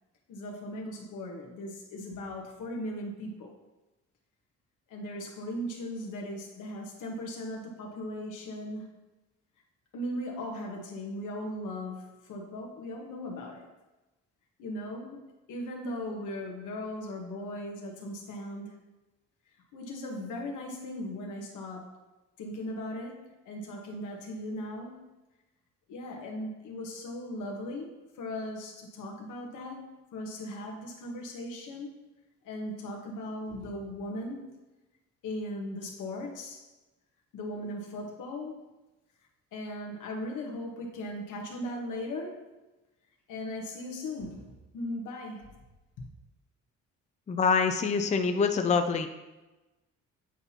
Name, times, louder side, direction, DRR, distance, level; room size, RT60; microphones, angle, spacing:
voice 1, 0.3-3.6 4.9-9.0 9.9-13.7 14.6-18.8 19.7-22.0 22.4-25.1 25.9-31.9 32.4-34.5 35.2-36.7 37.3-38.6 39.5-42.4 43.3-45.5 46.0-46.1, left 1 dB, 85° left, 0 dB, 1.3 m, -38 dB
voice 2, 47.3-49.1, left 5 dB, 25° left, 7 dB, 0.4 m, -25 dB
9.1 x 4.1 x 2.9 m, 1.1 s
cardioid pair, 90°, 30 cm